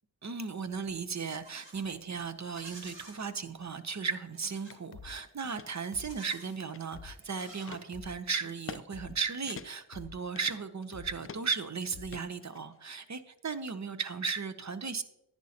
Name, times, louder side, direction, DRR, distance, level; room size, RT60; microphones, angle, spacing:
voice 1, 0.2-15.0, right 5 dB, 35° right, 10 dB, 0.7 m, -36 dB
Livestock farm animals working animals, 1.1-1.9 2.4-3.2 4.3-4.8 5.9-6.6 7.1-8.2, right 2 dB, 60° right, 3.2 m, -52 dB
sound 1, 4.4-4.6 4.9-5.1 5.4-5.6 5.9-6.1 6.4-6.6 6.9-7.1 7.4-7.6 7.9-8.1 8.4-8.6 8.9-9.1 9.4-9.6 9.9-10.1 10.4-10.6 10.9-11.1 11.4-11.6 11.9-12.1, left 6 dB, 50° left, 0.8 m, -49 dB
sound 2, 4.7-4.8 5.3-5.7 6.2-7.2 7.7-7.9 8.5-8.8 9.1-9.2 9.5-9.9 10.3-10.9 11.2-11.6 12.1-12.9, left 6 dB, 30° left, 0.4 m, -46 dB
10.5 x 9.6 x 2.8 m, 0.81 s
cardioid pair, 70°, 49 cm